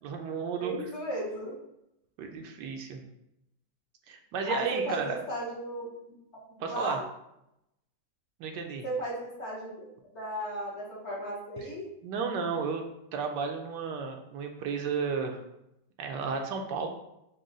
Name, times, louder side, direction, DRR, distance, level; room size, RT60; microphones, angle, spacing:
voice 1, 0.0-0.7 2.2-3.0 4.1-5.2 6.6-7.0 8.4-8.8 11.6-11.7 12.0-12.8 13.1-15.4 16.0-16.9, right 5 dB, 80° right, 3 dB, 1.3 m, -33 dB
voice 2, 0.6-1.5 4.5-5.9 6.6-7.0 8.8-9.9 10.1-11.9, right 1 dB, 45° left, -5 dB, 1.2 m, -35 dB
6.2 x 2.3 x 3.8 m, 0.83 s
omnidirectional pair, 1.9 m